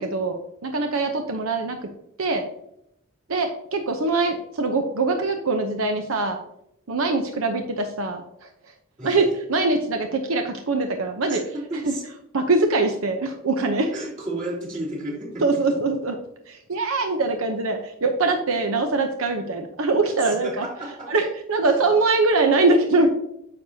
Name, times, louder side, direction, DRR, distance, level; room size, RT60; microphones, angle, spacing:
voice 1, 0.0-1.8 2.2-2.5 3.3-6.4 6.9-8.5 9.0-11.4 11.9-12.0 12.3-13.9 15.4-16.2 16.5-20.7 21.1-23.1, right 3 dB, 85° right, 5 dB, 0.8 m, -23 dB
voice 2, 11.3-12.0 13.9-15.8 20.2-21.1, right 1 dB, 40° right, -4 dB, 2.9 m, -33 dB
9.5 x 6.5 x 2.8 m, 0.78 s
head